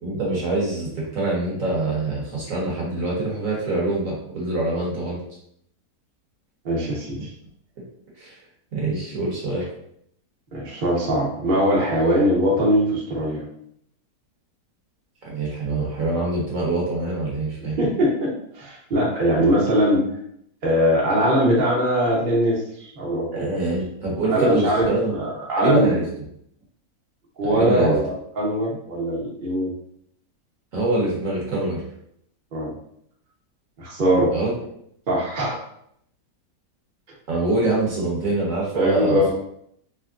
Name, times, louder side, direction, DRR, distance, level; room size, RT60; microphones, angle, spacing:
voice 1, 0.0-5.2 7.8-7.9 8.2-8.4 8.7-9.7 15.2-17.8 23.3-25.2 25.6-26.0 27.4-27.9 30.7-31.8 34.3-34.5 37.3-39.2, right 2 dB, 55° right, -4 dB, 1.3 m, -24 dB
voice 2, 6.6-7.3 9.6-9.7 10.5-13.4 17.8-20.0 20.6-23.5 24.2-24.9 25.2-26.0 27.4-29.7 32.5-32.7 33.8-34.3 35.1-35.6 38.7-39.3, equal, 40° right, -4 dB, 0.9 m, -21 dB
3.4 x 3.3 x 2.5 m, 0.70 s
omnidirectional pair, 1.8 m